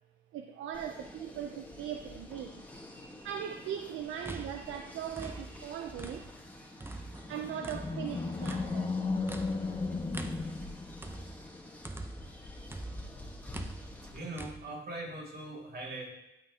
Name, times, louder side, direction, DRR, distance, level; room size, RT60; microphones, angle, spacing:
voice 1, 0.3-2.6 3.2-6.3 7.3-9.0, right 9 dB, 75° right, 7 dB, 0.5 m, -39 dB
sound 1, 0.7-14.2, left 1 dB, 10° left, 1.3 m, -48 dB
sound 2, 4.0-6.5 6.8-12.4 12.7-14.6, right 2 dB, 10° right, 0.6 m, -44 dB
Animal, 6.9-11.5, left 3 dB, 25° left, 0.8 m, -35 dB
voice 2, 14.0-16.1, right 2 dB, 55° right, -1 dB, 2.2 m, -41 dB
12.0 x 5.8 x 2.8 m, 0.91 s
cardioid pair, 90°, 20 cm